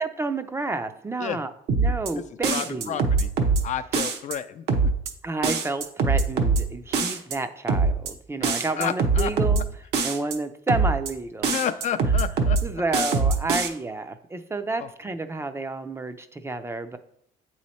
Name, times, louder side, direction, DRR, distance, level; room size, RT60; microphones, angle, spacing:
voice 1, 0.0-1.5 1.8-3.0 5.2-9.6 10.0-11.5 12.6-17.0, right 2 dB, 15° right, 9 dB, 0.4 m, -30 dB
sound 1, 1.7-2.1 2.4-3.6 3.9-4.4 4.7-5.1 5.4-6.6 6.9-7.4 7.7-8.1 8.4-9.6 9.9-10.4 10.7-11.1 11.4-12.6 12.9-13.7, right 4 dB, 70° right, 0.9 m, -22 dB
voice 2, 2.5-3.3 3.6-4.6 8.4-8.5 8.8-9.3 11.5-12.6 14.8-14.9, left 9 dB, 45° left, 11 dB, 0.4 m, -30 dB
8.2 x 3.1 x 4.2 m, 0.69 s
cardioid pair, 110°, 17 cm